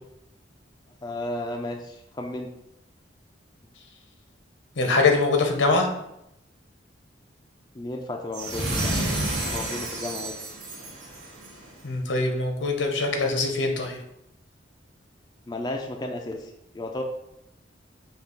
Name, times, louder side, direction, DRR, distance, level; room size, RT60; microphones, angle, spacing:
voice 1, 1.0-2.5 7.7-9.0 9.5-10.3 15.5-17.0, left 1 dB, 20° left, 2 dB, 0.3 m, -33 dB
voice 2, 4.8-5.9 11.8-14.0, left 3 dB, 80° left, 3 dB, 0.8 m, -23 dB
sound 1, 8.3-11.6, right 1 dB, 75° right, 1.3 m, -30 dB
5.4 x 2.3 x 3.7 m, 0.81 s
head